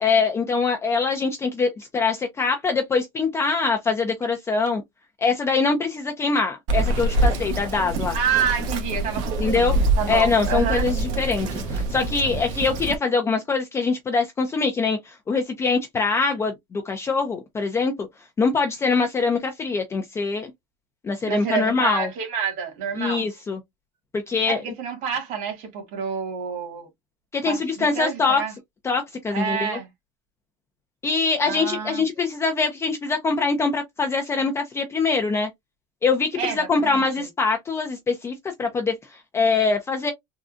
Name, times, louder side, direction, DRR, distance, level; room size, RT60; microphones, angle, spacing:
voice 1, 0.0-4.8 5.2-8.2 9.4-9.7 10.1-18.1 18.4-20.5 21.0-22.1 23.0-23.6 24.1-24.6 27.3-28.4 28.8-29.8 31.0-35.5 36.0-40.1, left 4 dB, 15° left, 0.5 m, -23 dB
Bird vocalization bird call bird song, 6.7-13.0, right 2 dB, 75° right, 1.1 m, -25 dB
voice 2, 8.1-10.9 21.3-23.3 24.4-26.9 27.4-28.5 29.3-29.9 31.4-32.0 36.3-37.3, right 7 dB, 50° right, 1.7 m, -28 dB
3.7 x 2.2 x 2.5 m
cardioid pair, 150°, 16 cm